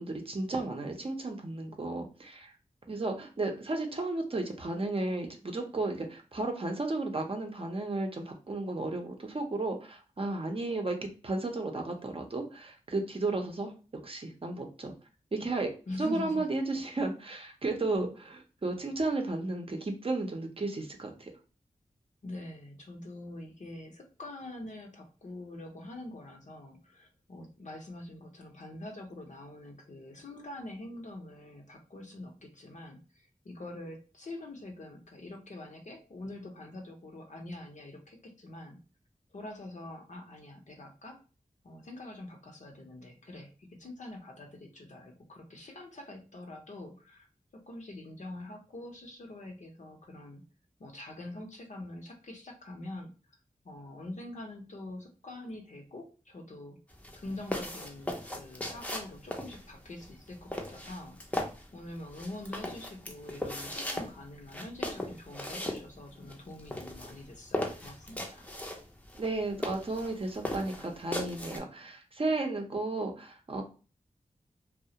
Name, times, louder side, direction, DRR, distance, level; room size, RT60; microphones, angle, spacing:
voice 1, 0.0-2.5 2.9-13.7 14.0-14.9 15.3-15.7 16.0-18.1 18.6-21.3 69.2-73.6, right 2 dB, 45° right, 3 dB, 0.6 m, -33 dB
voice 2, 15.9-16.5 17.9-18.1 22.2-38.8 39.3-41.2 41.6-47.3 47.5-50.4 50.8-53.1 53.6-56.8 57.1-61.5 61.7-68.5, left 1 dB, 60° left, 3 dB, 0.6 m, -45 dB
sound 1, 56.9-71.6, left 1 dB, 10° left, 0.5 m, -38 dB
2.3 x 2.0 x 2.7 m, 0.34 s
wide cardioid pair, 55°, 14 cm